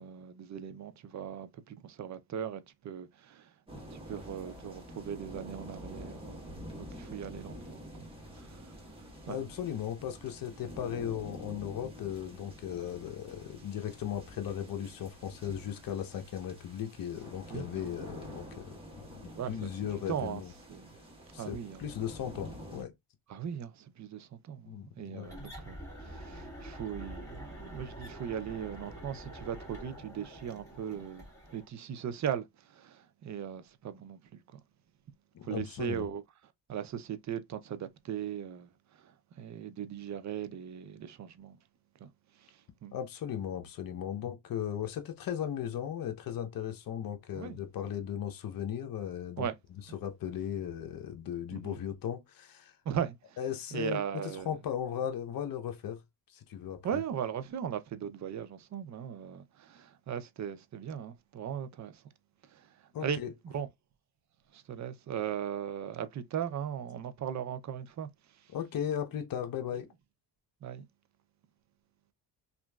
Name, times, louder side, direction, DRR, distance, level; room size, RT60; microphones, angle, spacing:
voice 1, 0.0-3.5 3.9-8.7 9.3-9.4 17.5-17.9 19.4-20.4 20.7-20.9 21.4-21.8 23.3-31.2 31.5-34.6 35.4-36.2 36.7-38.7 39.0-41.6 42.0-42.1 42.4-42.9 47.3-47.6 49.4-49.5 51.5-51.8 52.9-53.4 53.7-54.5 56.8-62.0 62.5-62.7 63.0-63.2 63.4-63.7 64.5-68.1 70.6-70.8, right 9 dB, 45° right, 0.5 m, -38 dB
sound 1, 3.7-22.8, equal, 15° right, 1.3 m, -48 dB
voice 2, 9.3-18.7 19.5-20.5 21.3-22.9 24.7-25.3 35.3-36.1 42.9-49.5 49.9-52.7 53.4-56.0 56.3-57.0 62.9-63.3 68.5-69.9, left 9 dB, 50° left, 0.7 m, -37 dB
sound 2, 25.2-31.7, equal, 5° left, 1.7 m, -46 dB
2.9 x 2.5 x 2.2 m
cardioid pair, 100°, 42 cm